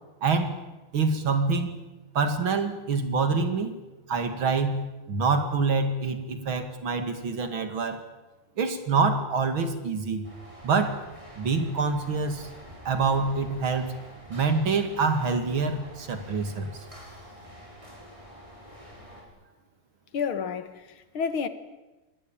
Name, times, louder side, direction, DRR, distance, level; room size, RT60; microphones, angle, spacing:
voice 1, 0.2-0.6 0.9-1.8 2.1-3.8 4.1-8.0 8.6-10.2 10.6-11.0 11.4-12.5 12.8-13.9 14.3-16.8, right 4 dB, 65° right, 3.0 m, -26 dB
sound 1, 10.2-19.2, equal, 15° right, 6.5 m, -47 dB
voice 2, 20.1-21.5, left 6 dB, 70° left, 2.3 m, -30 dB
26.0 x 19.5 x 9.0 m
omnidirectional pair, 2.4 m